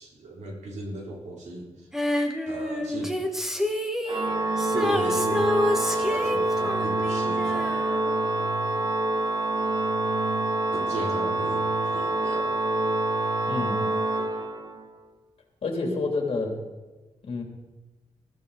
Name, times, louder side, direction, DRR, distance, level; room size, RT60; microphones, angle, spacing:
voice 1, 0.0-1.7 2.5-3.1 4.7-7.9 10.6-12.6, right 2 dB, 85° right, -1 dB, 3.7 m, -36 dB
Female singing, 1.9-8.6 8.8-8.9, left 1 dB, 5° right, 1.4 m, -29 dB
Organ, 4.1-15.0, right 2 dB, 35° right, 1.0 m, -26 dB
voice 2, 13.5-13.8 15.6-16.5 17.2-17.4, left 3 dB, 55° left, 1 dB, 3.3 m, -28 dB
19.5 x 14.0 x 4.2 m, 1.2 s
wide cardioid pair, 165°, 12 cm